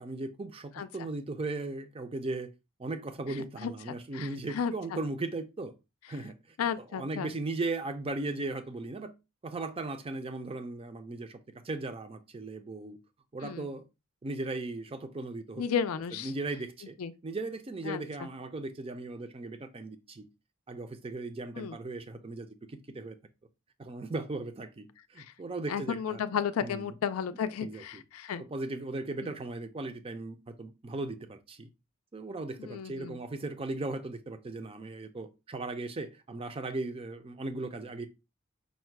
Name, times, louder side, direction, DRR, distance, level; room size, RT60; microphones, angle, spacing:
voice 1, 0.0-2.5 2.8-5.7 6.1-9.1 9.4-11.4 11.6-13.0 13.3-13.8 14.2-15.6 16.1-17.0 17.2-20.3 20.7-23.2 23.8-26.2 26.6-26.9 27.6-28.0 28.4-31.7 32.1-38.1, right 2 dB, 25° right, 0.5 m, -37 dB
voice 2, 4.1-4.7 6.6-7.3 13.4-13.7 15.6-16.3 17.0-17.1 17.8-18.3 21.6-21.8 25.2-25.3 25.7-28.4 29.2-29.3 32.6-33.2, left 7 dB, 85° left, 0.4 m, -33 dB
5.3 x 2.1 x 4.5 m
head